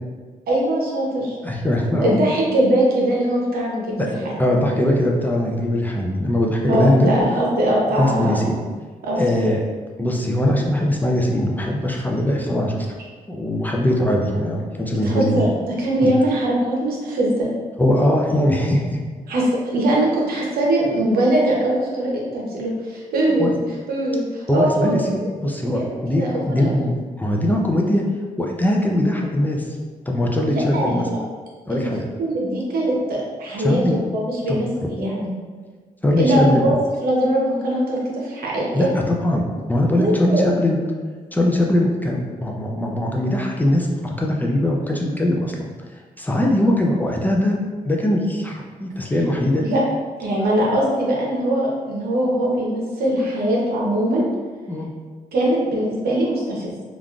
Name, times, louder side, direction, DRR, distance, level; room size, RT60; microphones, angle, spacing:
voice 1, 0.5-1.4 2.0-4.3 6.7-8.5 9.0-9.5 14.9-17.5 19.3-23.6 23.9-25.3 25.6-26.8 30.5-31.2 31.7-31.9 32.2-35.3 36.2-36.8 37.0-38.9 40.0-40.5 49.6-49.8 50.2-54.2 55.3-56.7, right 1 dB, 85° right, -3 dB, 0.8 m, -21 dB
voice 2, 1.4-2.1 4.0-4.1 4.4-7.1 8.0-8.6 9.2-9.6 10.0-12.9 13.3-15.5 16.0-16.1 17.8-19.0 23.4-23.5 24.5-28.0 28.4-29.6 30.1-31.1 31.7-32.0 33.6-34.0 34.5-34.6 36.0-36.6 38.7-39.4 39.7-40.8 41.3-45.6 46.2-47.6 47.8-49.6 54.7-54.9, left 1 dB, 10° left, -1 dB, 0.4 m, -21 dB
3.5 x 2.4 x 2.3 m, 1.5 s
cardioid pair, 100°, 15 cm